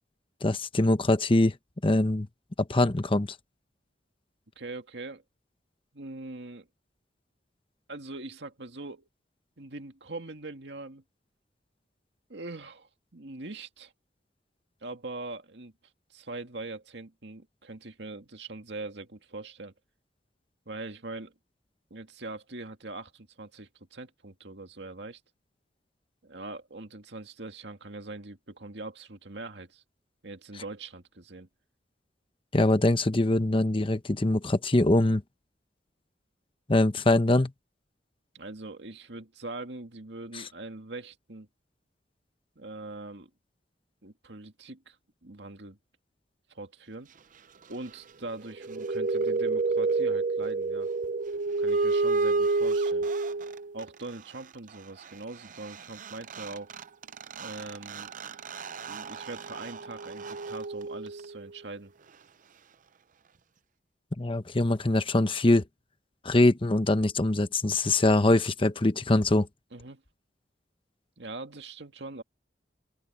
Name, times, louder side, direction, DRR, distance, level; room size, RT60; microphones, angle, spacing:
voice 1, 0.4-1.5 1.8-2.3 2.6-3.3 32.5-35.2 36.7-37.5 40.3-40.4 64.2-65.6 66.2-69.5, left 2 dB, 30° left, 1.0 m, -23 dB
voice 2, 4.6-5.2 5.9-6.7 7.9-9.0 9.6-11.0 12.3-13.9 14.8-15.7 16.1-19.7 20.7-21.3 21.9-25.2 26.2-29.8 30.2-31.5 38.3-41.5 42.6-43.3 44.0-45.0 45.2-45.8 46.5-47.1 47.7-50.9 51.6-53.1 53.7-56.7 57.4-58.1 58.9-61.9 69.7-70.0 71.2-72.2, right 2 dB, 70° right, 2.2 m, -42 dB
sound 1, 48.5-53.8 55.7-55.8 56.0-61.5, right 3 dB, 50° right, 0.6 m, -29 dB
head